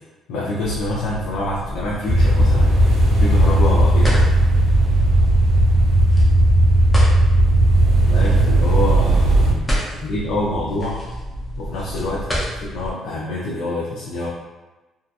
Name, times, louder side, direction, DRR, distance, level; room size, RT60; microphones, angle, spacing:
voice 1, 0.3-4.3 8.0-9.7 9.9-11.0 11.6-12.3 12.7-14.3, left 1 dB, 85° left, -6 dB, 0.5 m, -26 dB
sound 1, 0.6-12.9, equal, 10° left, 0.6 m, -30 dB
sound 2, 2.0-9.5, right 1 dB, 85° right, 0.7 m, -15 dB
2.7 x 2.3 x 2.4 m, 1.1 s
cardioid pair, 175°, 0 cm